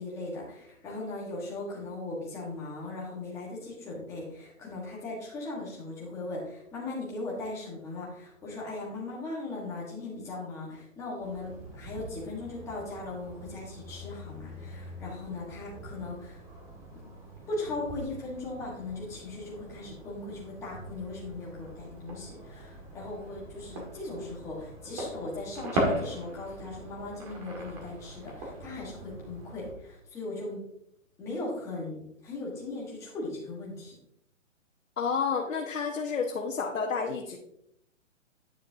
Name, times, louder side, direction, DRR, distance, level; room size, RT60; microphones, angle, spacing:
voice 1, 0.0-16.4 17.5-30.6 31.2-33.9, left 2 dB, 5° left, -5 dB, 1.3 m, -38 dB
sound 1, 11.2-29.8, right 1 dB, 30° right, 1.8 m, -40 dB
voice 2, 35.0-37.4, left 5 dB, 85° left, 1 dB, 1.2 m, -30 dB
9.5 x 6.5 x 2.7 m, 0.75 s
hypercardioid pair, 165°, 38 cm